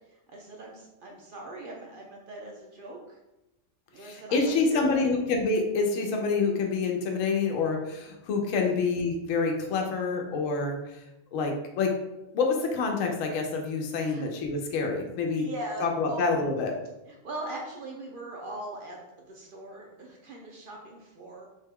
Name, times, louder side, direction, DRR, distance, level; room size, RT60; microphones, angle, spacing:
voice 1, 0.3-3.2 3.9-5.1 8.6-8.7 13.9-14.3 15.3-16.2 17.1-19.0 19.3-21.4, right 2 dB, 60° right, -1 dB, 0.6 m, -40 dB
voice 2, 4.0-10.8 11.3-11.9 12.3-15.5 15.8-16.7, left 4 dB, 80° left, 2 dB, 1.0 m, -27 dB
3.5 x 2.2 x 3.4 m, 0.96 s
omnidirectional pair, 1.3 m